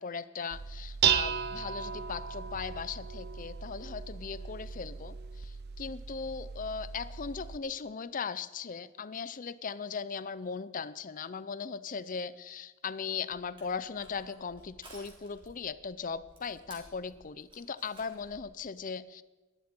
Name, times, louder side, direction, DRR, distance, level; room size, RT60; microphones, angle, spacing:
voice 1, 0.0-19.2, left 5 dB, 40° left, 16 dB, 0.5 m, -38 dB
Dishes pots and pans, 0.5-7.6, right 8 dB, 50° right, 0.5 m, -35 dB
Crushing, 13.3-18.5, right 2 dB, 25° right, 3.7 m, -56 dB
19.0 x 12.5 x 4.5 m, 1.2 s
head